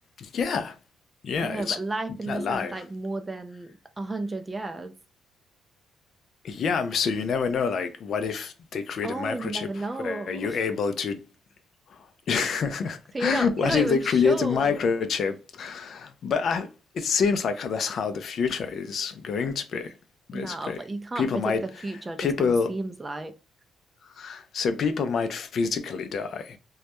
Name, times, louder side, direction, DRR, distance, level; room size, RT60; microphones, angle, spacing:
voice 1, 0.2-0.8 1.2-1.8 2.3-2.8 6.4-9.7 10.0-11.2 11.9-20.0 20.3-20.8 21.2-21.6 22.2-22.7 24.2-26.6, left 5 dB, 60° left, 0.4 m, -27 dB
voice 2, 1.4-4.9 9.0-10.6 13.1-14.9 20.3-21.6 21.8-23.3, right 2 dB, 20° right, 0.4 m, -33 dB
2.2 x 2.0 x 2.8 m
cardioid pair, 90°, 0 cm